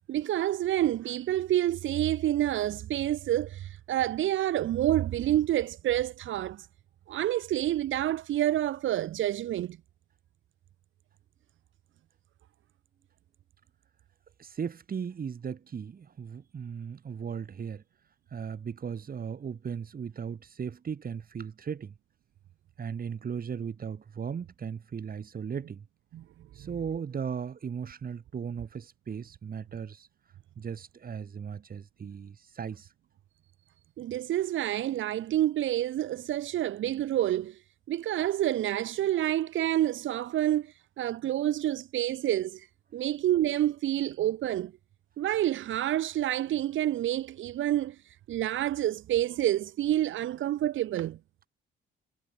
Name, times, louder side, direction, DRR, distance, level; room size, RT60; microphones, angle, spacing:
voice 1, 0.1-6.7 7.1-9.8 26.1-26.2 34.0-37.6 37.9-42.7 42.9-44.7 45.2-51.2, right 13 dB, 80° right, 3.4 m, -28 dB
voice 2, 14.4-17.8 18.3-21.9 22.8-25.9 26.5-30.1 30.6-32.9, right 7 dB, 45° right, 5.7 m, -37 dB
cardioid pair, 90°, 20 cm